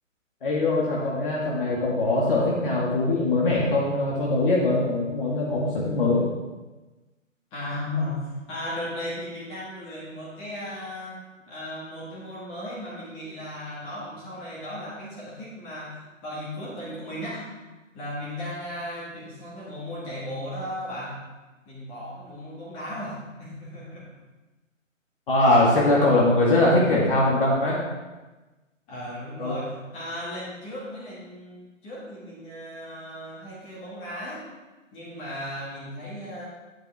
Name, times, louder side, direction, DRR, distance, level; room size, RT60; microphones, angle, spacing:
voice 1, 0.4-6.2 25.3-27.8 29.4-29.6, left 2 dB, 45° left, -4 dB, 2.1 m, -22 dB
voice 2, 7.5-11.2 11.5-17.5 17.9-21.2 21.7-24.1 28.9-34.4 34.9-36.5, left 1 dB, 15° left, -7 dB, 2.1 m, -36 dB
10.0 x 8.2 x 3.5 m, 1.2 s
figure-of-eight pair, 145°, 39 cm